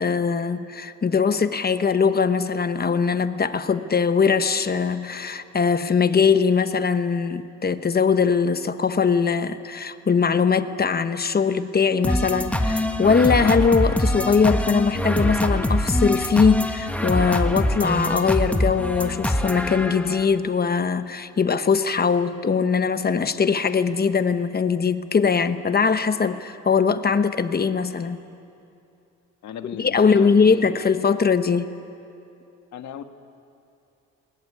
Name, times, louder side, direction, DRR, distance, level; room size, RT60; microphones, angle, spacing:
voice 1, 0.0-28.3 29.8-31.7, left 5 dB, 30° left, 11 dB, 1.1 m, -21 dB
sound 1, 12.0-20.3, left 1 dB, 5° left, 1.5 m, -24 dB
voice 2, 29.4-30.7 32.7-33.0, left 9 dB, 70° left, 8 dB, 1.5 m, -36 dB
20.5 x 20.5 x 9.8 m, 2.7 s
cardioid pair, 90°, 30 cm